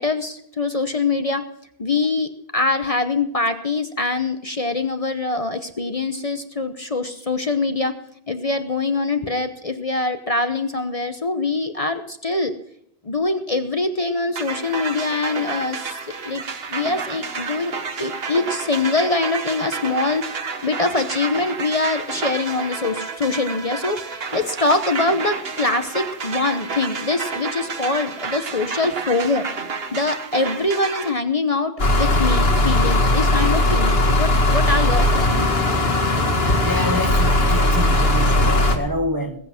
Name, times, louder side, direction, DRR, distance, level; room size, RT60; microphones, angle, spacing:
voice 1, 0.0-1.4 1.8-7.9 8.3-12.5 13.0-16.4 16.7-20.2 20.6-29.5 29.9-35.5 36.1-36.2, left 3 dB, 35° left, 1.0 m, -23 dB
sound 1, 14.4-31.1, right 5 dB, 70° right, 1.5 m, -30 dB
sound 2, 31.8-38.8, left 1 dB, 70° left, 2.2 m, -18 dB
voice 2, 36.6-39.4, equal, 20° right, 1.2 m, -27 dB
20.5 x 8.6 x 5.9 m
omnidirectional pair, 1.1 m